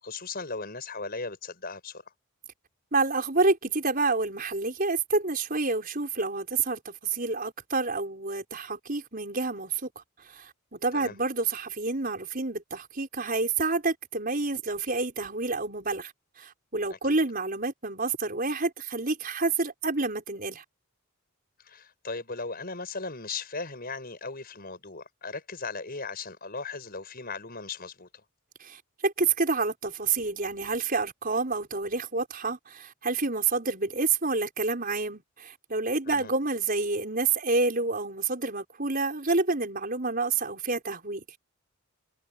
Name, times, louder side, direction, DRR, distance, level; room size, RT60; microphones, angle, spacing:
voice 1, 0.0-2.0 10.9-11.2 16.9-17.0 21.6-28.1 36.1-36.3, left 4 dB, 40° left, 6.5 m, -37 dB
voice 2, 2.9-9.9 10.3-16.1 16.4-20.6 28.6-41.2, right 3 dB, 40° right, 5.6 m, -28 dB
head